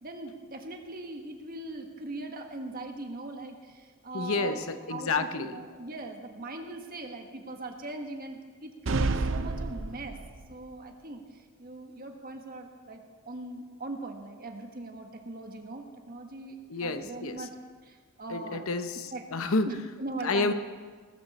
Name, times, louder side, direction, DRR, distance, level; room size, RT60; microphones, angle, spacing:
voice 1, 0.0-4.6 4.9-10.2 10.5-17.5 17.8-18.6 19.1-19.2 19.6-20.5, right 2 dB, 40° right, 4 dB, 1.5 m, -40 dB
voice 2, 4.1-5.6 16.7-17.5 18.3-19.7 20.2-20.5, left 3 dB, 75° left, 9 dB, 0.9 m, -30 dB
sound 1, 8.9-10.5, right 3 dB, 60° right, 0.7 m, -29 dB
19.5 x 13.5 x 4.3 m, 1.5 s
head